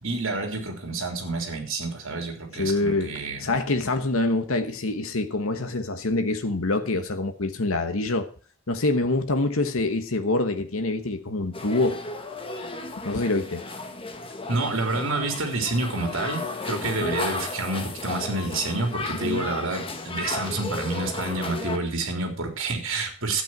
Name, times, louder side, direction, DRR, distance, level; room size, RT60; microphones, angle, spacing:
voice 1, 0.0-3.5 14.5-23.4, right 2 dB, 60° right, 4 dB, 3.5 m, -28 dB
voice 2, 2.5-3.1 3.4-8.3 8.7-12.0 13.0-13.6 17.0-17.2 19.2-19.5, left 2 dB, 65° left, 8 dB, 1.2 m, -25 dB
sound 1, 11.5-21.8, left 3 dB, 25° left, 1.4 m, -34 dB
12.0 x 8.9 x 6.1 m, 0.41 s
head